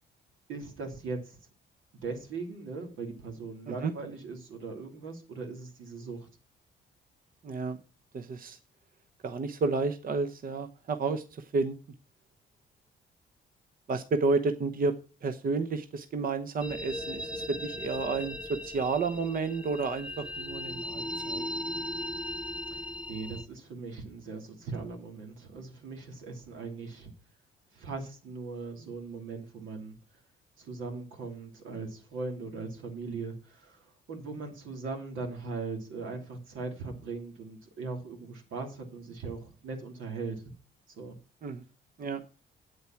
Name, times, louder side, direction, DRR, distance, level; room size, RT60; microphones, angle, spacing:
voice 1, 0.5-1.4 2.0-6.3 22.7-27.1 27.7-30.0 30.6-40.4 40.9-41.2, right 4 dB, 80° right, 3 dB, 2.9 m, -39 dB
voice 2, 7.4-7.8 8.1-8.6 9.2-11.8 13.9-14.9 15.2-21.5 41.4-41.6 42.0-42.2, right 4 dB, 45° right, 7 dB, 1.0 m, -31 dB
sound 1, 16.6-23.4, left 1 dB, 5° right, 1.2 m, -37 dB
8.5 x 8.0 x 5.8 m, 0.35 s
cardioid pair, 90°, 20 cm